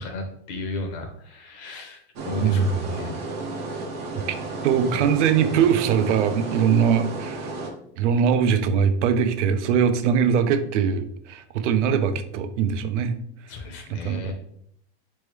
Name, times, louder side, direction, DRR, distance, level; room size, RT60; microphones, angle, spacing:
voice 1, 0.0-3.2 13.5-14.3, left 2 dB, 30° left, 4 dB, 0.6 m, -34 dB
sound 1, 2.2-7.7, right 2 dB, 25° right, 0.3 m, -33 dB
voice 2, 4.6-7.5 8.0-13.1 13.9-14.3, right 7 dB, 90° right, 11 dB, 0.6 m, -21 dB
4.3 x 3.2 x 3.4 m, 0.69 s
supercardioid pair, 170°, 35 cm